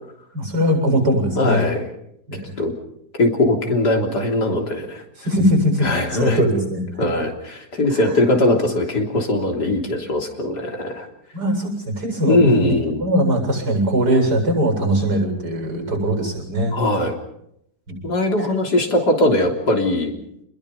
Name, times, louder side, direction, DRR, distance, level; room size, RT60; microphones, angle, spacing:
voice 1, 0.3-1.6 2.3-2.5 5.2-7.1 7.9-8.2 11.3-16.8 17.9-18.0, equal, 85° right, 2 dB, 8.6 m, -21 dB
voice 2, 1.4-1.8 2.6-2.7 3.2-5.0 5.8-6.4 7.0-11.1 12.3-13.0 16.7-17.1 18.0-20.2, left 1 dB, 85° left, 2 dB, 4.0 m, -20 dB
29.5 x 21.0 x 5.5 m, 0.75 s
omnidirectional pair, 1.7 m